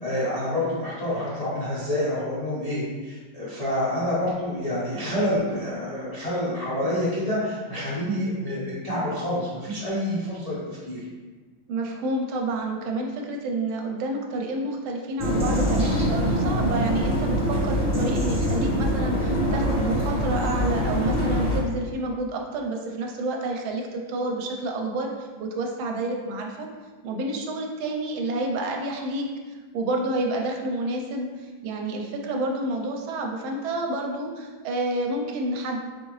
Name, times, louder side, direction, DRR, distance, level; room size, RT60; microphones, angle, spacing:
voice 1, 0.0-10.6 10.9-11.0, left 1 dB, 80° left, -9 dB, 0.3 m, -27 dB
voice 2, 11.7-26.7 27.0-29.3 29.7-35.8, right 2 dB, 80° right, 2 dB, 1.4 m, -29 dB
sound 1, 15.2-21.6, equal, 15° right, 0.6 m, -24 dB
4.4 x 3.6 x 3.1 m, 1.4 s
omnidirectional pair, 2.3 m